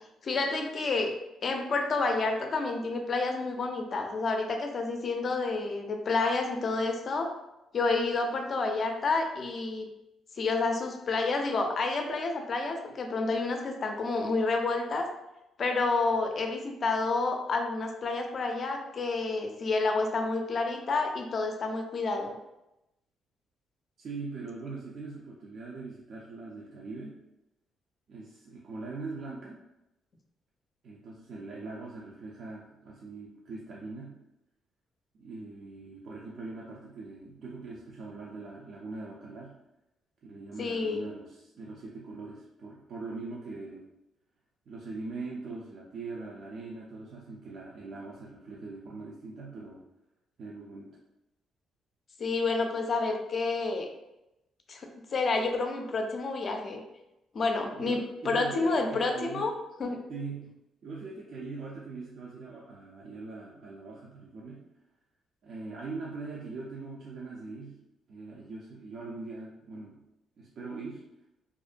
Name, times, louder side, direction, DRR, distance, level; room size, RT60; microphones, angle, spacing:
voice 1, 0.2-1.1 1.4-7.3 7.7-9.9 10.4-15.1 15.6-22.3 40.6-41.1 52.2-53.9 54.7-56.8 57.3-59.5 59.8-60.0, left 3 dB, 50° left, 4 dB, 0.4 m, -29 dB
voice 2, 24.0-27.2 28.1-29.6 30.8-34.2 35.2-39.5 40.2-43.8 44.7-49.8 50.4-50.9 57.7-59.5 60.1-60.5 60.8-64.6 65.4-67.8 68.1-70.0 70.4-71.0, right 3 dB, 60° right, -4 dB, 0.4 m, -41 dB
2.5 x 2.1 x 2.4 m, 0.91 s
cardioid pair, 90°, 0 cm